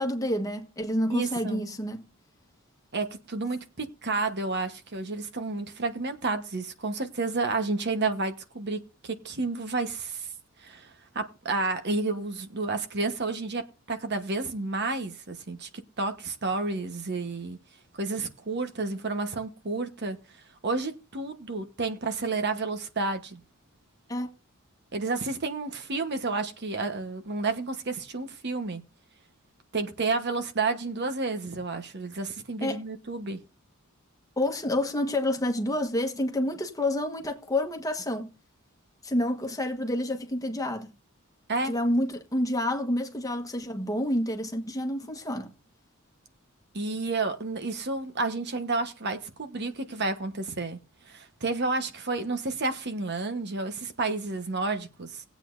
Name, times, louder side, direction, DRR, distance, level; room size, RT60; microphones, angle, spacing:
voice 1, 0.0-2.1 24.1-24.3 32.6-32.8 34.4-38.3 39.0-40.9 41.6-45.5, left 1 dB, 15° left, 1.3 m, -28 dB
voice 2, 1.1-1.6 2.9-10.3 10.6-17.6 17.9-20.2 20.6-23.4 24.9-28.8 29.7-33.4 41.5-41.7 46.7-50.8 51.1-55.2, right 3 dB, 55° right, 1.2 m, -31 dB
19.5 x 8.3 x 2.6 m
head